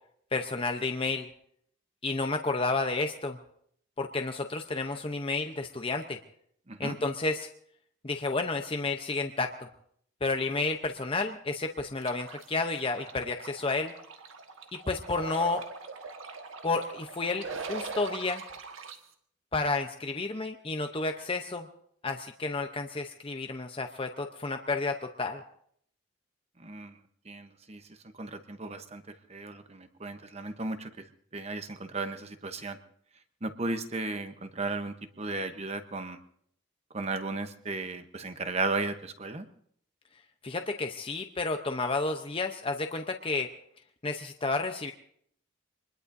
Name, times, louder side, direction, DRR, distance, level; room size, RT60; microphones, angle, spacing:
voice 1, 0.3-1.3 2.0-3.4 4.0-6.2 6.8-7.5 8.0-9.7 10.2-13.9 14.9-15.6 16.6-18.4 19.5-21.7 22.0-25.4 40.4-43.5 44.0-44.9, left 3 dB, 25° left, 5 dB, 0.7 m, -31 dB
sound 1, 12.0-19.0, right 4 dB, 80° right, 1.5 m, -41 dB
voice 2, 26.6-27.0 27.3-27.8 28.2-31.1 31.3-32.8 33.4-36.2 36.9-39.5, right 3 dB, 30° right, 9 dB, 1.0 m, -35 dB
25.0 x 21.0 x 2.7 m, 0.67 s
head